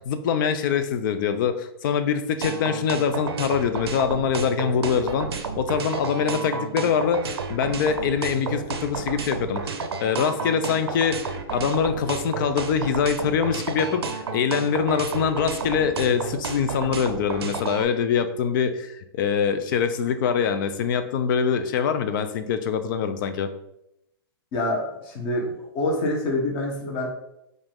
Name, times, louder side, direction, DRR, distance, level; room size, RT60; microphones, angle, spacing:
voice 1, 0.0-23.5, left 7 dB, 55° left, 10 dB, 0.5 m, -24 dB
sound 1, 2.4-17.8, right 5 dB, 90° right, 0.6 m, -31 dB
voice 2, 24.5-27.1, left 1 dB, 35° left, 0 dB, 1.2 m, -26 dB
5.0 x 2.6 x 3.5 m, 0.83 s
hypercardioid pair, 135°, 13 cm